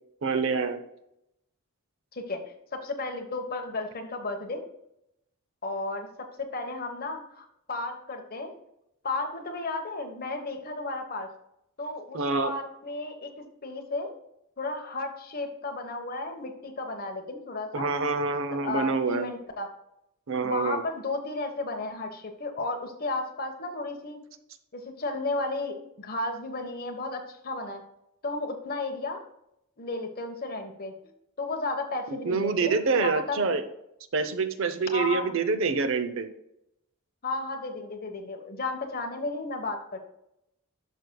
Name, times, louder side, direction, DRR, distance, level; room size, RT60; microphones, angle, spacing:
voice 1, 0.2-0.8 12.1-12.5 17.7-19.3 20.3-20.8 32.2-33.6 34.1-36.3, right 4 dB, 60° right, 10 dB, 0.7 m, -26 dB
voice 2, 2.1-4.6 5.6-8.5 9.0-11.3 11.8-14.1 14.6-17.9 18.6-19.7 20.4-24.2 24.7-27.8 28.2-29.2 29.8-30.9 31.4-33.5 34.9-35.3 37.2-40.0, left 3 dB, 40° left, 4 dB, 1.2 m, -33 dB
11.0 x 6.4 x 2.3 m, 0.82 s
head